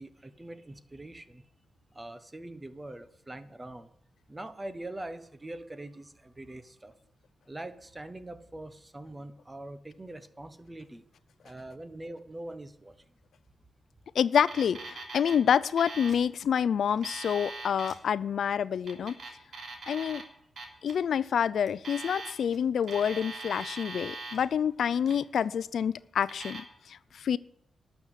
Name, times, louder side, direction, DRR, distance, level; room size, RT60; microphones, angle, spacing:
voice 1, 0.0-1.4 1.9-3.9 4.3-6.9 7.5-11.0 11.4-12.9 19.9-20.2, right 1 dB, 20° right, 12 dB, 1.3 m, -43 dB
voice 2, 14.1-19.1 19.9-20.2 20.8-27.4, left 8 dB, 75° left, 18 dB, 0.4 m, -27 dB
Alarm, 14.3-15.4 15.6-16.2 16.8-18.0 18.8-20.2 20.6-20.9 21.7-22.6 22.8-24.4 24.9-25.4 26.2-26.6, right 3 dB, 65° right, 3.4 m, -41 dB
12.5 x 7.1 x 10.0 m, 0.71 s
cardioid pair, 90°, 0 cm